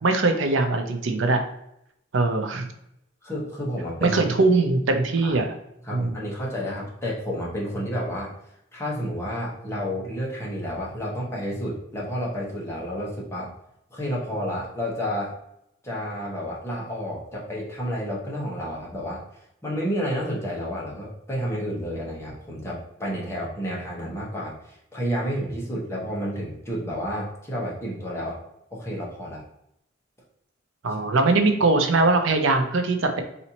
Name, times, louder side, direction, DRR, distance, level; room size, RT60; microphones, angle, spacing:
voice 1, 0.0-1.4 2.1-2.7 4.0-5.5 5.9-6.2 30.8-33.2, right 3 dB, 65° right, 5 dB, 0.6 m, -21 dB
voice 2, 3.2-4.2 5.2-5.4 5.8-8.3 8.7-13.5 13.9-15.3 15.8-19.2 19.6-28.4 28.7-29.4, equal, 15° left, -4 dB, 1.0 m, -30 dB
4.1 x 2.7 x 2.8 m, 0.78 s
head